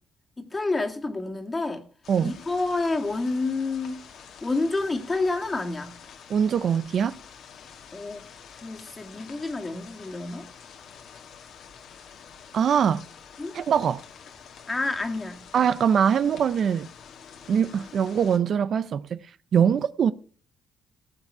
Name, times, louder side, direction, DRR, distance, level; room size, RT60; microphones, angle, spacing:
voice 1, 0.4-1.8 2.2-4.0 4.4-6.0 7.9-8.2 8.5-10.5 13.4-13.6 14.7-15.5, left 3 dB, 25° left, 2.1 m, -29 dB
sound 1, 2.0-18.4, left 7 dB, 75° left, 1.9 m, -48 dB
voice 2, 6.3-7.2 12.5-13.0 13.5-14.0 15.5-16.9 17.5-19.2 19.5-20.1, right 7 dB, 60° right, 0.5 m, -22 dB
17.5 x 7.3 x 4.7 m
cardioid pair, 90°, 0 cm